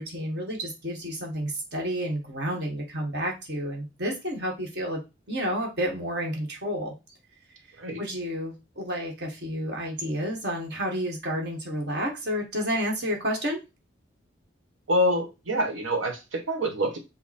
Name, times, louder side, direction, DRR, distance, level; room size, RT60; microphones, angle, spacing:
voice 1, 0.0-5.0 5.3-6.9 8.0-13.6, equal, 55° right, 0 dB, 1.5 m, -30 dB
voice 2, 14.9-17.0, equal, 85° right, 4 dB, 1.2 m, -26 dB
5.6 x 2.2 x 4.2 m, 0.26 s
head